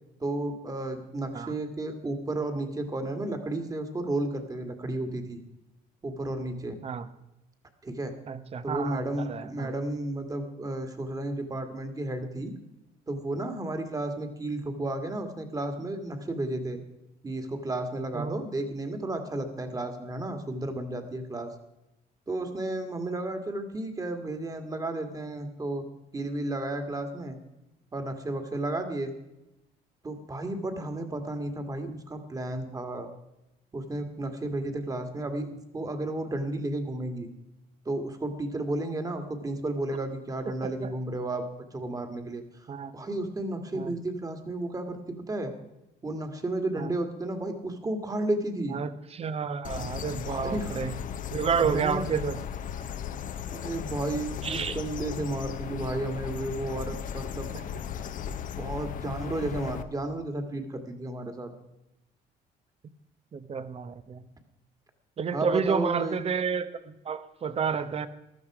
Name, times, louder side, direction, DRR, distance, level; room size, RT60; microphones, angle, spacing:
voice 1, 0.2-5.4 6.0-6.8 7.8-8.1 8.6-12.6 13.1-16.8 17.2-21.5 22.3-25.9 26.1-27.4 27.9-29.1 30.0-33.1 33.7-37.3 37.9-41.5 41.7-45.5 46.0-48.8 50.3-50.8 51.6-52.0 53.5-57.5 58.3-61.5 65.3-66.2, right 2 dB, 20° right, 6 dB, 1.9 m, -33 dB
voice 2, 8.3-9.7 18.1-18.4 40.4-40.9 42.7-43.0 43.7-44.0 46.8-46.9 48.7-51.0 51.3-52.4 54.4-54.8 57.5-57.7 59.4-59.5 63.3-64.3 65.2-68.1, right 6 dB, 35° right, 13 dB, 0.9 m, -30 dB
sound 1, 49.6-59.8, left 8 dB, 50° left, 0.9 m, -36 dB
15.0 x 12.0 x 4.8 m, 0.93 s
cardioid pair, 110°, 17 cm